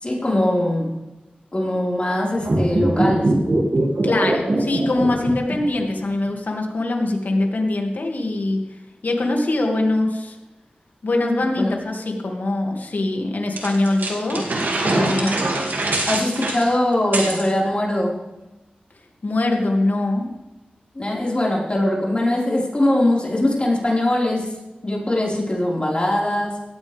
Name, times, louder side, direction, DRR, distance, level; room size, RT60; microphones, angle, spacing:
voice 1, 0.0-0.9 1.5-3.3 11.6-11.7 15.1-15.4 16.0-18.1 21.0-24.5 24.8-26.6, left 1 dB, 35° left, -4 dB, 5.1 m, -21 dB
sound 1, 2.4-5.8 6.0-6.1, right 2 dB, 55° right, 2.7 m, -20 dB
voice 2, 4.0-8.6 9.0-10.3 11.0-14.5 14.7-15.4 19.2-20.3, left 2 dB, 70° left, 1 dB, 2.6 m, -22 dB
sound 2, 13.6-17.5, right 2 dB, 90° right, 2.6 m, -24 dB
17.5 x 14.0 x 3.6 m, 1.0 s
cardioid pair, 50°, 3 cm